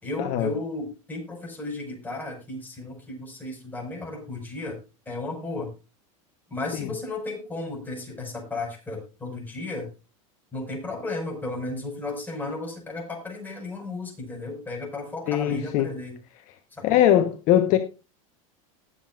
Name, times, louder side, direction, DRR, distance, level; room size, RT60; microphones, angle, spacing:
voice 1, 0.0-4.8 5.1-5.7 6.5-9.9 10.5-16.2 16.7-17.0, left 2 dB, 10° left, 0 dB, 5.4 m, -34 dB
voice 2, 15.3-15.9 16.8-17.8, left 11 dB, 45° left, 7 dB, 1.2 m, -21 dB
19.5 x 7.7 x 2.5 m, 0.30 s
supercardioid pair, 130°, 18 cm